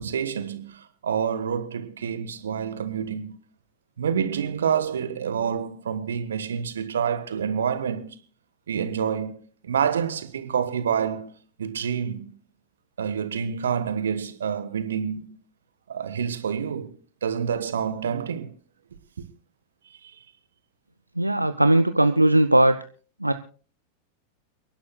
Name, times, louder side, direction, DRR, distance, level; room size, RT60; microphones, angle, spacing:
voice 1, 0.0-3.4 4.0-8.2 8.7-11.3 11.6-12.3 13.0-15.4 15.9-17.0 17.2-18.5 19.2-19.3 19.9-20.2, right 7 dB, 65° right, 1.2 m, -28 dB
voice 2, 21.2-22.8 23.2-23.3, right 1 dB, 85° right, 0.5 m, -19 dB
29.5 x 11.5 x 2.3 m
figure-of-eight pair, 90°, 0 cm